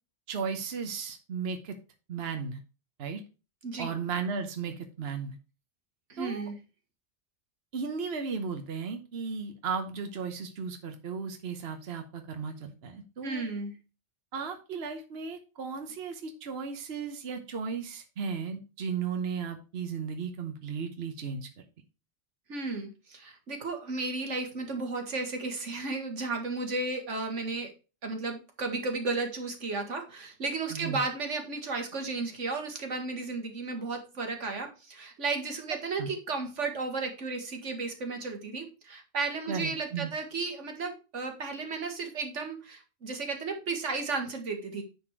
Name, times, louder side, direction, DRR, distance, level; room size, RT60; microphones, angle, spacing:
voice 1, 0.3-1.8 2.1-2.6 3.0-3.2 3.8-5.4 6.2-6.5 7.7-13.4 14.3-21.5 30.7-31.0 36.0-36.1 39.5-40.1, right 5 dB, 60° right, 6 dB, 1.2 m, -35 dB
voice 2, 6.1-6.6 13.2-13.7 22.5-27.7 28.0-44.8, right 3 dB, 90° right, 4 dB, 1.9 m, -34 dB
9.8 x 4.3 x 4.5 m, 0.32 s
omnidirectional pair, 1.2 m